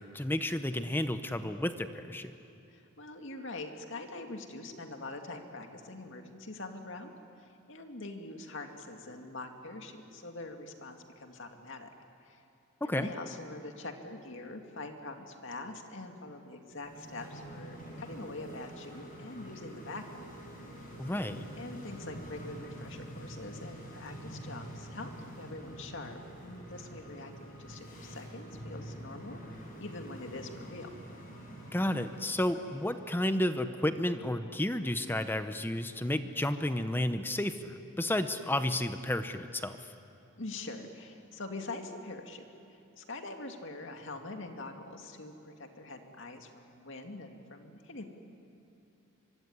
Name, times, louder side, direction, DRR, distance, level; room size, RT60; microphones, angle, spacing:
voice 1, 0.0-2.3 12.8-13.1 21.0-21.5 31.7-39.8, left 1 dB, 10° left, 9 dB, 0.8 m, -32 dB
voice 2, 2.7-7.1 7.4-11.9 12.2-12.4 12.8-20.0 20.8-20.9 21.6-25.1 25.4-30.9 40.4-42.4 42.7-48.0, left 2 dB, 60° left, 4 dB, 2.4 m, -44 dB
sound 1, 16.7-33.3, equal, 40° left, 7.5 m, -47 dB
24.5 x 24.5 x 9.9 m, 2.8 s
head